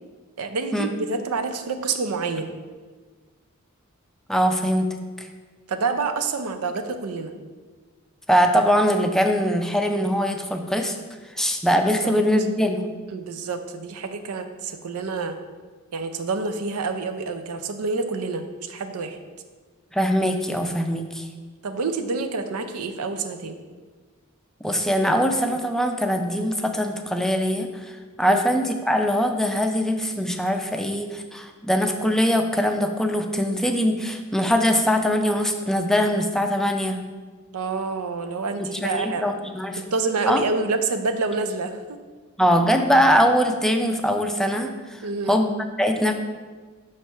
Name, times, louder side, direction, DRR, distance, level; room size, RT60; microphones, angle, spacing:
voice 1, 0.4-2.5 5.7-7.3 12.0-12.1 13.1-15.4 15.9-19.2 21.6-23.6 28.3-28.4 37.5-39.3 39.8-42.0 45.0-45.4, right 4 dB, 90° right, 8 dB, 0.5 m, -27 dB
voice 2, 4.3-4.9 8.3-10.9 11.4-12.9 19.9-21.3 24.6-27.9 28.2-37.0 38.6-39.8 40.3-40.4 42.4-45.0 45.3-45.5 45.8-46.1, equal, ahead, 4 dB, 0.4 m, -22 dB
6.0 x 3.1 x 5.5 m, 1.4 s
head